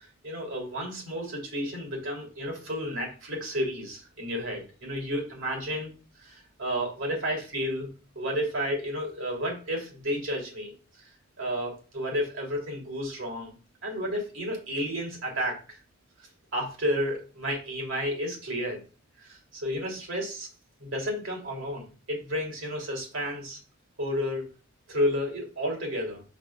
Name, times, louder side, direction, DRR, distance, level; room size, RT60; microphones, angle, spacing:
voice 1, 0.2-5.9 6.2-7.9 8.1-10.7 11.4-13.5 13.8-15.8 16.5-18.8 19.2-20.5 20.8-23.6 24.0-24.5 24.9-26.2, equal, 70° right, 0 dB, 3.0 m, -31 dB
5.2 x 4.4 x 5.7 m, 0.35 s
head